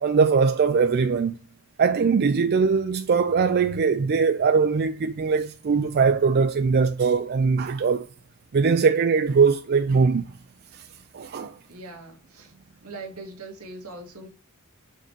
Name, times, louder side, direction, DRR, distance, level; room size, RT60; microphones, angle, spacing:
voice 1, 0.0-1.4 1.8-8.1 8.5-10.3 10.7-10.9 11.1-11.5, right 5 dB, 45° right, 0.4 m, -21 dB
voice 2, 11.4-12.5 12.8-14.3, right 2 dB, 85° right, 2.1 m, -41 dB
6.6 x 3.8 x 4.6 m
head